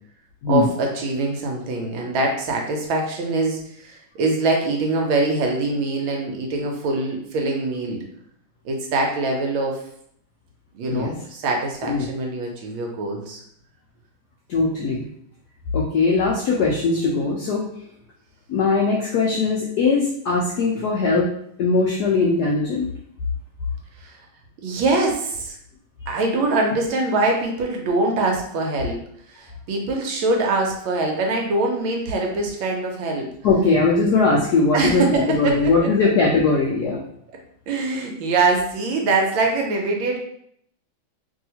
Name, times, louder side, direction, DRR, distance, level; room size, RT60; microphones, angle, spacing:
voice 1, 0.5-8.0 8.6-9.8 10.7-13.4 24.0-24.2 24.6-25.6 26.1-29.0 29.3-33.3 34.7-35.9 37.7-40.2, right 2 dB, 80° right, 1 dB, 1.3 m, -23 dB
voice 2, 14.5-15.1 15.7-17.7 18.5-21.3 21.6-22.9 33.4-37.0, left 4 dB, 90° left, -3 dB, 0.8 m, -20 dB
3.0 x 2.7 x 2.7 m, 0.69 s
omnidirectional pair, 2.2 m